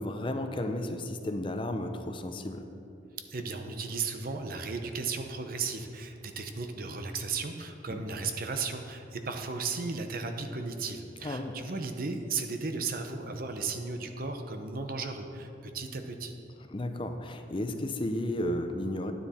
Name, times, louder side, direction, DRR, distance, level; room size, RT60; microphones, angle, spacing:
voice 1, 0.0-2.6 7.9-8.0 11.2-11.5 16.7-19.1, left 1 dB, 30° left, 6 dB, 0.6 m, -33 dB
voice 2, 3.3-16.3, right 4 dB, 55° right, 6 dB, 0.8 m, -35 dB
9.8 x 9.7 x 4.3 m, 2.7 s
head